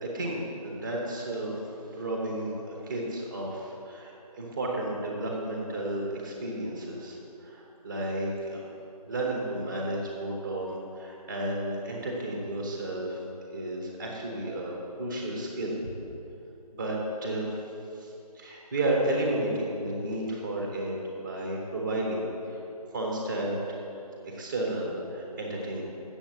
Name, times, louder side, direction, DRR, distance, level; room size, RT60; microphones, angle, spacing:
voice 1, 0.0-8.6 9.1-13.2 13.5-15.8 16.7-17.5 18.0-22.6 22.9-23.8 24.2-25.8, right 1 dB, 10° right, -2 dB, 0.7 m, -32 dB
8.0 x 7.0 x 7.3 m, 2.8 s
figure-of-eight pair, 165°, 20 cm